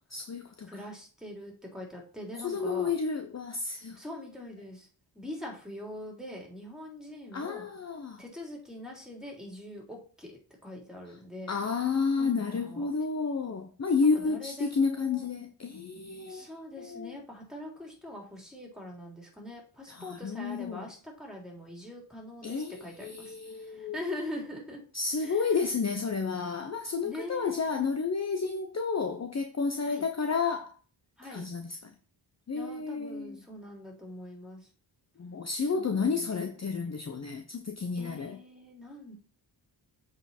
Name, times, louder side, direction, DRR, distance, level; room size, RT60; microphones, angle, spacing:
voice 1, 0.1-0.7 2.4-4.0 7.3-8.2 11.5-16.5 16.8-17.1 19.9-20.9 22.4-24.0 24.9-30.7 31.3-31.8 32.5-33.4 35.2-38.4, left 5 dB, 35° left, 0.9 m, -31 dB
voice 2, 0.6-2.9 3.9-4.9 5.1-7.7 8.2-10.3 10.6-11.6 12.2-12.9 14.0-15.3 16.3-24.8 25.2-25.6 27.0-27.7 29.9-30.1 31.2-31.5 32.5-34.7 35.6-36.3 36.7-37.0 38.0-39.1, left 1 dB, ahead, 3.5 m, -43 dB
7.7 x 4.8 x 4.4 m
cardioid pair, 70°, 47 cm